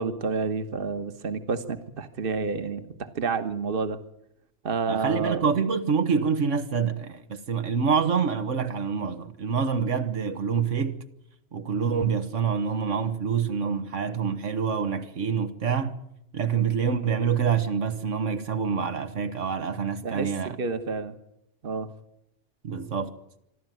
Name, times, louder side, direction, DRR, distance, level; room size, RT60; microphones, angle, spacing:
voice 1, 0.0-4.0 4.6-5.4 20.0-21.2 21.6-21.9, right 4 dB, 50° right, 1.5 m, -29 dB
voice 2, 4.9-11.0 11.5-16.0 16.3-20.6 22.6-23.1, right 6 dB, 85° right, 1.7 m, -26 dB
26.0 x 12.5 x 9.2 m
omnidirectional pair, 1.2 m